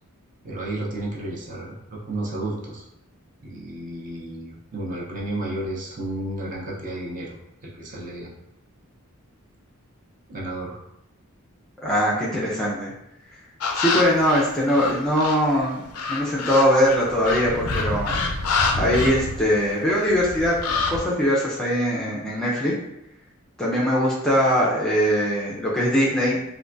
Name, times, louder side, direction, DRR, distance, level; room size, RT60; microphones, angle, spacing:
voice 1, 0.4-2.8 3.4-8.3 10.3-10.8, right 1 dB, 40° right, -4 dB, 0.6 m, -32 dB
voice 2, 11.8-12.9 13.7-15.8 16.1-18.1 18.8-22.7 23.6-26.4, equal, 5° left, -6 dB, 0.4 m, -21 dB
sound 1, 13.6-15.5 15.9-19.8 20.1-21.0, left 3 dB, 85° left, 0.4 m, -26 dB
3.4 x 2.2 x 2.5 m, 0.84 s
head